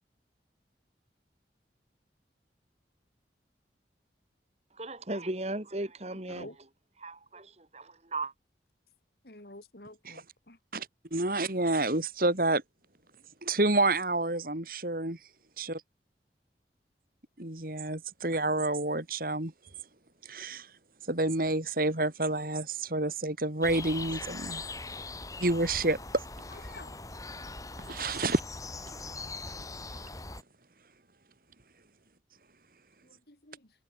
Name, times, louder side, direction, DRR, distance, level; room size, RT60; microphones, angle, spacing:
voice 1, 4.8-6.5 7.0-8.3, right 2 dB, 35° right, 2.3 m, -36 dB
voice 2, 9.2-10.6 26.7-27.0 33.3-33.6, left 2 dB, 60° left, 3.6 m, -48 dB
voice 3, 11.1-12.6 13.4-15.2 15.6-15.8 17.4-19.5 20.3-20.7 21.1-24.6 25.4-26.0 27.8-28.4, right 2 dB, 55° right, 3.1 m, -29 dB
sound 1, 23.6-30.4, left 3 dB, 20° left, 2.3 m, -41 dB
head